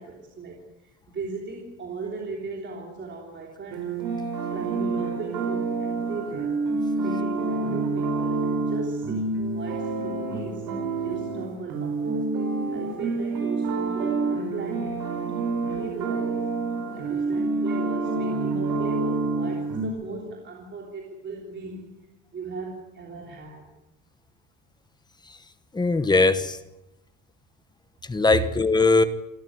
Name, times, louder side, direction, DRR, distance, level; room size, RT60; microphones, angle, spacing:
voice 1, 0.0-4.0 4.5-6.6 6.9-10.7 11.0-12.3 12.7-16.5 16.9-22.1 22.3-23.6 28.3-28.4, right 4 dB, 25° right, 0 dB, 3.3 m, -37 dB
sound 1, 3.7-19.9, right 3 dB, 60° right, 5.8 m, -28 dB
voice 2, 25.7-26.6 28.1-29.0, left 3 dB, 10° left, 11 dB, 1.0 m, -20 dB
28.0 x 13.5 x 9.7 m, 0.93 s
cardioid pair, 170°, 41 cm